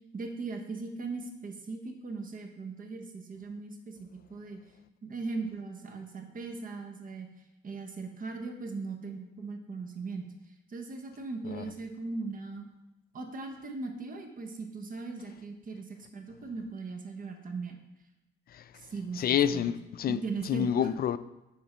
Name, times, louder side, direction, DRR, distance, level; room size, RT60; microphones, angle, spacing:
voice 1, 0.1-4.6 5.0-7.3 7.6-10.3 10.7-12.7 13.1-17.8 18.8-19.7 20.1-20.9, right 4 dB, 45° right, 1.1 m, -39 dB
voice 2, 19.2-20.2 20.5-21.2, left 9 dB, 50° left, 0.4 m, -27 dB
9.8 x 3.7 x 4.4 m
cardioid pair, 90°, 20 cm